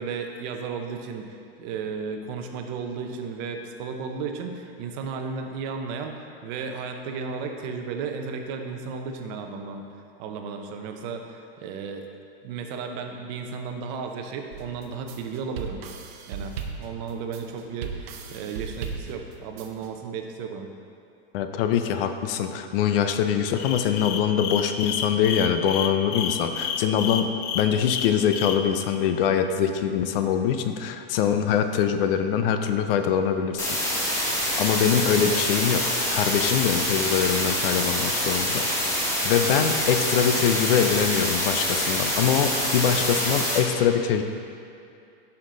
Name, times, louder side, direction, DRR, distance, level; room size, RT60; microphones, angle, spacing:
voice 1, 0.0-9.8 10.2-12.1 12.4-15.8 16.3-20.7, right 5 dB, 45° right, 4 dB, 0.9 m, -34 dB
sound 1, 14.5-19.9, right 6 dB, 90° right, 0.9 m, -37 dB
voice 2, 21.3-33.7 34.6-38.9 39.2-44.2, left 8 dB, 65° left, 8 dB, 0.7 m, -23 dB
sound 2, 23.6-28.6, left 8 dB, 30° left, 0.4 m, -30 dB
sound 3, 33.6-43.6, equal, 10° left, 1.4 m, -26 dB
9.8 x 5.9 x 3.9 m, 2.5 s
supercardioid pair, 150°, 31 cm